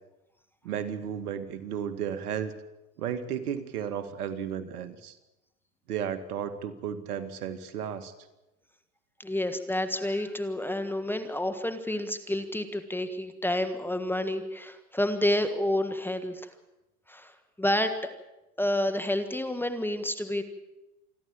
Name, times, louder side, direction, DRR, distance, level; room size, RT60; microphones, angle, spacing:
voice 1, 0.6-2.5 3.0-5.2 5.9-8.1, right 8 dB, 70° right, 10 dB, 2.2 m, -33 dB
voice 2, 9.2-16.5 17.1-17.3 17.6-18.0 18.6-20.4, left 1 dB, 5° left, 9 dB, 1.4 m, -29 dB
27.5 x 11.5 x 8.7 m, 0.97 s
hypercardioid pair, 110°, 47 cm